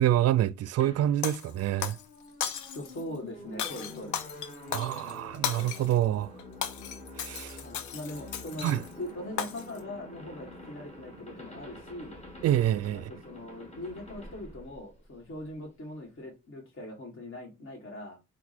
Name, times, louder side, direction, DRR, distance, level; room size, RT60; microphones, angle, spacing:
voice 1, 0.0-2.0 4.7-6.3 7.2-7.6 8.6-8.8 12.4-13.1, right 12 dB, 55° right, 0.4 m, -27 dB
sound 1, 0.8-15.5, left 1 dB, 20° left, 1.8 m, -47 dB
Shatter, 1.2-2.1 2.4-3.0 3.6-6.0 6.4-8.9 9.4-9.8, left 8 dB, 75° left, 0.7 m, -36 dB
voice 2, 2.7-4.2 7.6-12.2 13.1-18.2, left 1 dB, 45° left, 1.8 m, -41 dB
4.5 x 2.6 x 4.2 m
cardioid pair, 90°, 30 cm